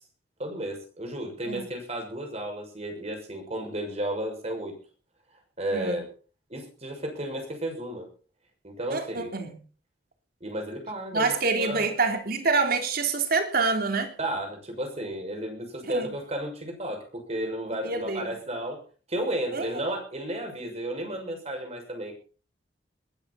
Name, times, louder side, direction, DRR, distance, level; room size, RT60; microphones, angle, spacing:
voice 1, 0.4-4.7 5.6-6.1 6.5-8.1 8.6-9.3 10.4-11.9 14.2-18.8 19.1-22.1, right 1 dB, 35° right, 6.5 m, -33 dB
voice 2, 8.9-9.5 11.1-14.1 15.8-16.1 17.8-18.4 19.5-19.8, right 4 dB, 55° right, 3.5 m, -26 dB
21.5 x 13.5 x 4.3 m
head